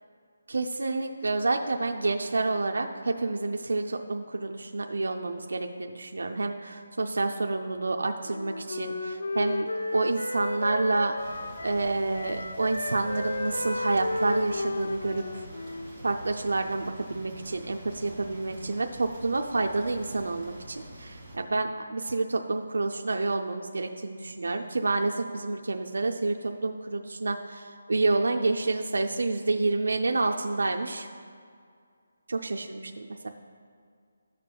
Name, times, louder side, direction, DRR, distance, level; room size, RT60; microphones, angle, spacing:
voice 1, 0.5-11.1 11.6-15.4 16.0-31.1 32.3-33.3, right 3 dB, 80° right, 3 dB, 0.5 m, -29 dB
Wind instrument woodwind instrument, 8.2-11.9 12.1-16.1, left 2 dB, 80° left, 0.7 m, -33 dB
sound 1, 11.2-21.4, equal, 15° left, 1.9 m, -46 dB
13.5 x 6.6 x 2.2 m, 2.2 s
hypercardioid pair, 180°, 0 cm